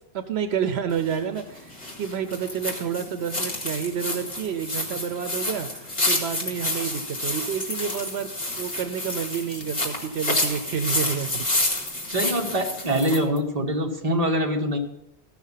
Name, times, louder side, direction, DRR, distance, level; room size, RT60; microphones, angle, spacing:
voice 1, 0.1-11.4, right 7 dB, 80° right, 9 dB, 0.9 m, -29 dB
sound 1, 0.9-13.2, left 1 dB, 40° left, 2.2 m, -29 dB
sound 2, 7.3-13.4, left 3 dB, 60° left, 1.4 m, -43 dB
voice 2, 12.1-14.8, equal, 35° right, 1 dB, 1.3 m, -24 dB
15.0 x 6.1 x 5.6 m, 0.83 s
omnidirectional pair, 1.1 m